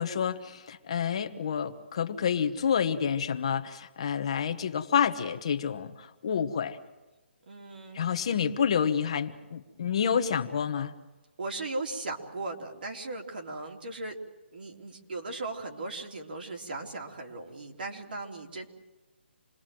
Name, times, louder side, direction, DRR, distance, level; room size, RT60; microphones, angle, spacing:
voice 1, 0.0-6.8 7.9-10.9, left 7 dB, 30° left, 9 dB, 1.1 m, -29 dB
voice 2, 7.5-8.0 11.4-14.2 14.5-18.7, right 2 dB, 55° right, 1 dB, 3.4 m, -37 dB
28.0 x 20.5 x 7.6 m, 1.1 s
hypercardioid pair, 180°, 6 cm